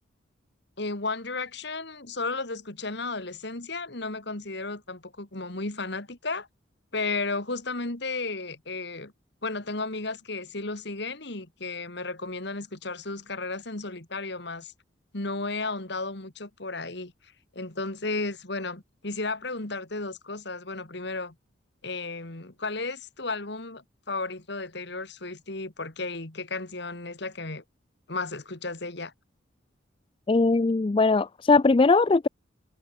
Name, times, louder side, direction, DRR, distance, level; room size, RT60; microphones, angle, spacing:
voice 1, 0.8-6.5 6.9-9.1 9.4-14.7 15.1-17.1 17.5-21.3 21.8-27.6 28.1-29.1, left 3 dB, 60° left, 2.3 m, -34 dB
voice 2, 30.3-32.3, left 3 dB, 25° left, 0.4 m, -20 dB
head